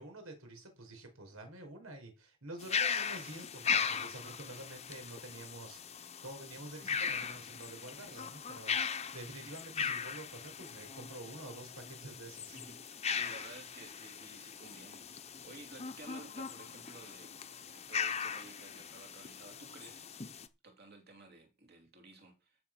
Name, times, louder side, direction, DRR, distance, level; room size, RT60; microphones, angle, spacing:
voice 1, 0.0-12.6, right 2 dB, 90° right, 4.8 m, -49 dB
sound 1, 2.6-20.5, left 6 dB, 30° left, 0.8 m, -39 dB
voice 2, 12.4-17.4 17.7-20.1 20.6-22.6, right 2 dB, 50° right, 3.3 m, -54 dB
13.5 x 6.2 x 6.1 m
head